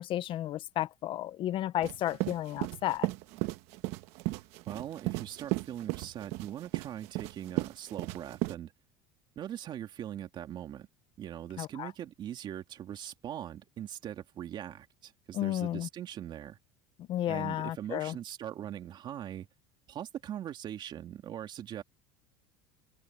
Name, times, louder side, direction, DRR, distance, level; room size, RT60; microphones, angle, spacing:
voice 1, 0.0-3.1 11.6-11.9 15.3-15.9 17.1-18.1, left 13 dB, 50° left, 0.8 m, -32 dB
sound 1, 1.8-8.5, right 20 dB, 70° right, 1.2 m, -35 dB
voice 2, 4.7-8.7 9.4-10.9 11.2-16.6 17.3-19.5 19.9-21.8, right 10 dB, 45° right, 2.7 m, -41 dB
supercardioid pair, 120°, 11 cm